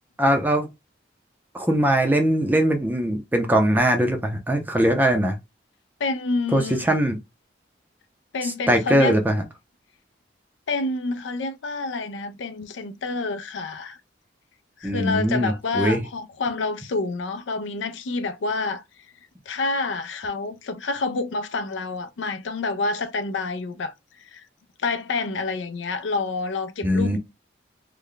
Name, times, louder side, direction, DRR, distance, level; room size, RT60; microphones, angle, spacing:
voice 1, 0.2-0.7 1.5-5.4 6.5-7.2 8.7-9.3 14.8-16.0 26.8-27.2, right 1 dB, 10° right, 0.5 m, -21 dB
voice 2, 6.0-6.9 8.3-9.2 10.7-14.0 14.8-19.1 19.5-24.5 24.8-27.2, left 3 dB, 80° left, 0.4 m, -28 dB
3.2 x 2.1 x 3.8 m
head